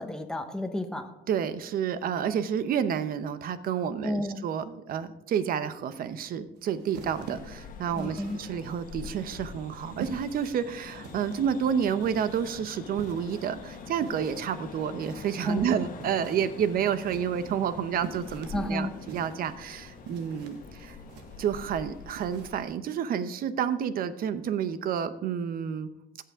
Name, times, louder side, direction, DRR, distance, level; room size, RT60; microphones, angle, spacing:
voice 1, 0.0-1.1 4.0-4.4 7.9-8.4 15.5-15.7 18.5-18.9, left 1 dB, 5° left, 5 dB, 1.1 m, -31 dB
voice 2, 1.3-21.0 21.4-25.9, right 8 dB, 60° right, 13 dB, 0.8 m, -30 dB
sound 1, 6.5-22.7, right 6 dB, 90° right, 1.2 m, -47 dB
sound 2, 7.0-22.6, left 5 dB, 55° left, 1.4 m, -45 dB
16.0 x 5.8 x 3.6 m, 0.93 s
cardioid pair, 110°, 17 cm